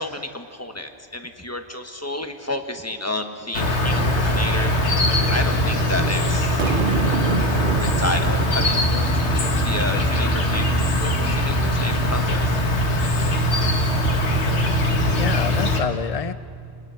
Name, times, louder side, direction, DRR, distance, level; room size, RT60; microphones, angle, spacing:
voice 1, 0.0-4.7 5.3-6.6 7.7-12.5 13.6-14.0, left 1 dB, 15° left, 6 dB, 1.3 m, -31 dB
Insect, 3.5-15.8, left 1 dB, 75° left, 2.0 m, -21 dB
Boom, 6.6-9.9, right 6 dB, 55° right, 0.9 m, -27 dB
voice 2, 14.9-16.3, left 7 dB, 40° left, 14 dB, 0.6 m, -27 dB
28.0 x 20.0 x 5.8 m, 2.5 s
omnidirectional pair, 1.2 m